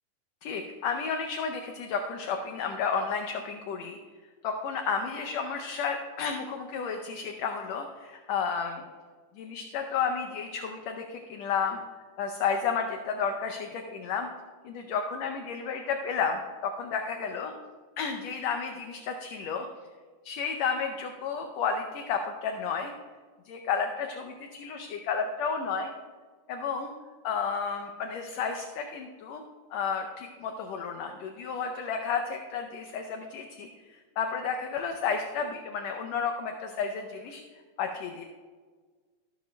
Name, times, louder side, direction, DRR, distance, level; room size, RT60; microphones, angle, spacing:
voice 1, 0.4-4.0 4.4-8.8 9.4-11.8 12.2-14.3 14.6-17.5 18.0-19.7 20.3-22.9 23.5-25.9 26.5-26.9 27.2-29.4 29.7-38.2, left 6 dB, 75° left, 4 dB, 1.6 m, -32 dB
13.5 x 12.5 x 2.2 m, 1.5 s
omnidirectional pair, 3.6 m